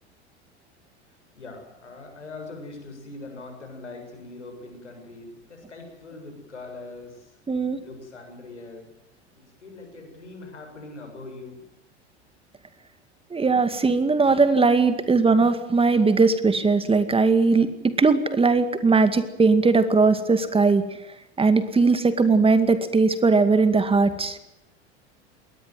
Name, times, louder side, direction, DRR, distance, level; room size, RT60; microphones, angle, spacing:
voice 1, 1.4-7.4 7.8-8.9 9.4-11.7, left 3 dB, 90° left, 4 dB, 7.4 m, -42 dB
voice 2, 7.5-7.8 13.3-20.8 21.4-24.4, right 4 dB, 15° right, 11 dB, 2.2 m, -19 dB
21.5 x 19.0 x 9.4 m, 0.91 s
hypercardioid pair, 85°, 34 cm